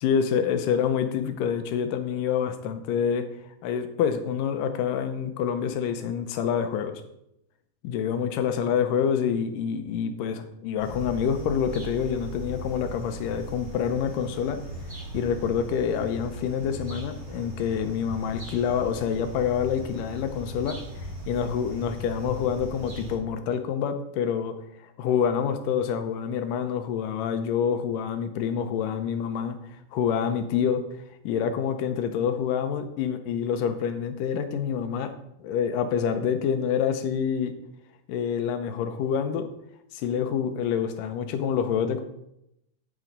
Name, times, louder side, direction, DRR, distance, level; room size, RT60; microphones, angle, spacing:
voice 1, 0.0-7.0 7.8-14.6 15.1-30.8 31.2-35.1 35.4-37.5 38.1-39.5 39.9-42.0, left 7 dB, 85° left, 8 dB, 2.5 m, -27 dB
sound 1, 10.8-23.2, right 1 dB, 40° right, 5.4 m, -38 dB
9.6 x 9.2 x 4.0 m, 0.80 s
omnidirectional pair, 3.8 m